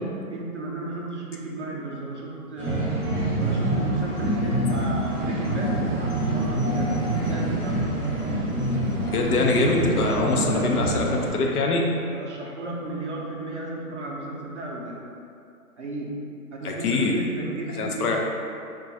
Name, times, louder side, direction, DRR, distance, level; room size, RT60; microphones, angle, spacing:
voice 1, 0.0-3.0 3.4-7.9 10.1-11.2 12.1-15.0 15.8-18.2, right 2 dB, 50° right, -3 dB, 0.5 m, -34 dB
sound 1, 2.6-11.3, right 1 dB, 10° right, 0.7 m, -26 dB
voice 2, 9.0-11.0 11.3-11.8 16.6-17.1 17.8-18.2, left 3 dB, 70° left, 0 dB, 0.6 m, -23 dB
2.4 x 2.3 x 3.9 m, 2.5 s
hypercardioid pair, 160°, 47 cm